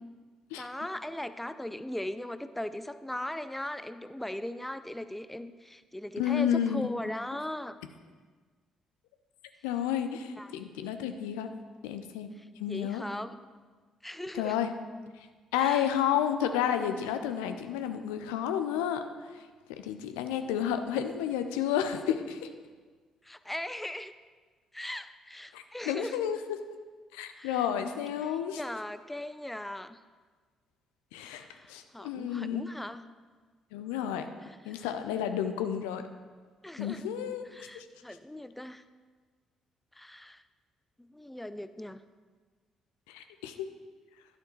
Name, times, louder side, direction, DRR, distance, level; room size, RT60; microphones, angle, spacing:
voice 1, 0.6-7.8 10.4-10.5 12.7-13.4 14.0-14.6 15.6-15.9 23.2-24.1 24.7-26.2 27.4-27.7 28.6-30.0 31.3-33.0 34.4-34.9 36.6-37.1 37.5-38.8 40.0-40.4 41.0-42.0, left 1 dB, 5° left, 12 dB, 0.4 m, -39 dB
voice 2, 6.2-6.9 9.6-11.5 11.8-12.3 12.6-13.0 14.3-14.7 15.5-19.5 19.8-22.5 25.5-26.6 27.1-28.6 31.1-32.6 33.7-34.3 34.7-36.0 36.8-37.9 43.1-43.7, left 9 dB, 70° left, 8 dB, 0.5 m, -31 dB
11.5 x 6.5 x 3.1 m, 1.5 s
figure-of-eight pair, 40°, 2 cm